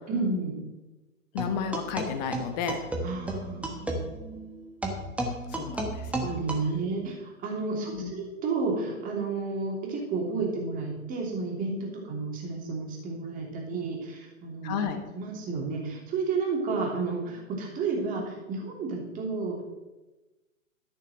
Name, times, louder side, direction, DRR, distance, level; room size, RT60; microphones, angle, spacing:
voice 1, 0.1-0.6 3.0-4.1 6.2-14.8 15.1-19.6, right 4 dB, 20° right, 0 dB, 3.0 m, -31 dB
voice 2, 1.3-2.8 5.5-6.3 7.7-8.1 14.6-15.0, left 7 dB, 30° left, 7 dB, 1.5 m, -32 dB
sound 1, 1.4-6.6, right 1 dB, 5° right, 1.3 m, -33 dB
13.0 x 6.8 x 6.4 m, 1.1 s
figure-of-eight pair, 125°, 41 cm